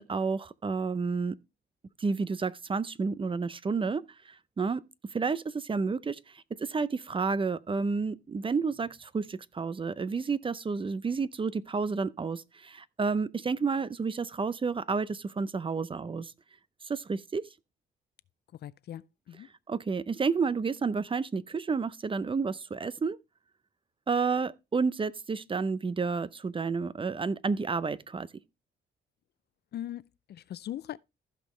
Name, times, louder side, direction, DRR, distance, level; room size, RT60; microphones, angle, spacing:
voice 1, 0.0-1.4 2.0-4.8 5.1-16.3 16.8-17.4 19.7-23.2 24.1-28.3, right 4 dB, 25° right, 0.6 m, -30 dB
voice 2, 18.6-19.5 29.7-31.0, left 12 dB, 55° left, 0.4 m, -40 dB
15.0 x 5.3 x 3.2 m
cardioid pair, 90°, 20 cm